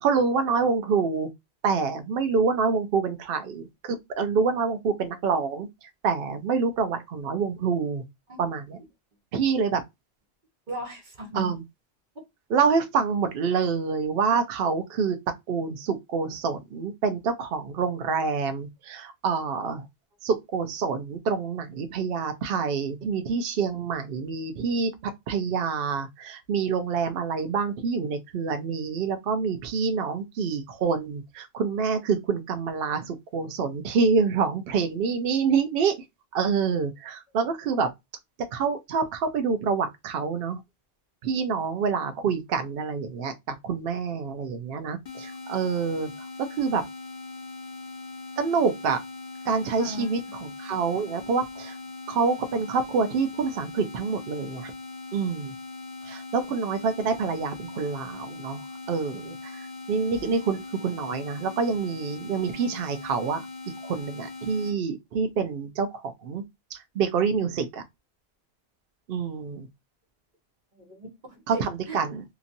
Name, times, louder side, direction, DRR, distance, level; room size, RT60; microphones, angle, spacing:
voice 1, 0.0-1.3 1.6-5.7 6.0-8.0 8.4-8.8 9.3-9.8 11.3-11.6 12.5-15.2 15.5-19.8 20.2-24.9 25.3-36.0 36.3-37.9 38.5-40.6 41.2-46.1 46.6-46.8 48.4-49.0 49.5-51.7 52.1-54.7 55.1-55.5 56.0-58.6 58.9-63.4 63.8-66.4 66.7-67.8 69.1-69.7 71.5-72.2, right 5 dB, 65° right, 0.7 m, -27 dB
voice 2, 10.7-11.5 12.2-12.3 49.8-50.4 70.8-72.0, right 1 dB, 50° right, 1.1 m, -38 dB
sound 1, 45.0-64.8, left 3 dB, 45° left, 0.6 m, -40 dB
2.9 x 2.6 x 2.5 m
omnidirectional pair, 1.1 m